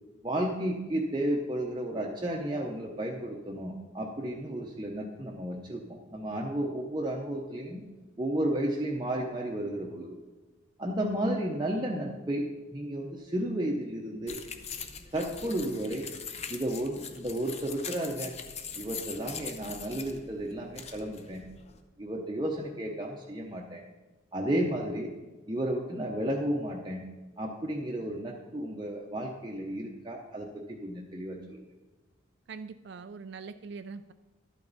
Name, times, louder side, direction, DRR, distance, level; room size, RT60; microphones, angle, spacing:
voice 1, 0.2-7.8 8.2-10.2 10.8-12.5 12.7-14.4 15.1-16.1 16.5-18.3 18.8-21.4 22.0-23.8 24.3-25.1 25.5-27.0 27.4-31.6, right 1 dB, 20° right, -1 dB, 0.8 m, -33 dB
sound 1, 14.3-21.8, left 6 dB, 30° left, 0.7 m, -42 dB
voice 2, 32.5-34.1, right 5 dB, 55° right, 10 dB, 0.3 m, -42 dB
12.0 x 8.8 x 4.0 m, 1.2 s
head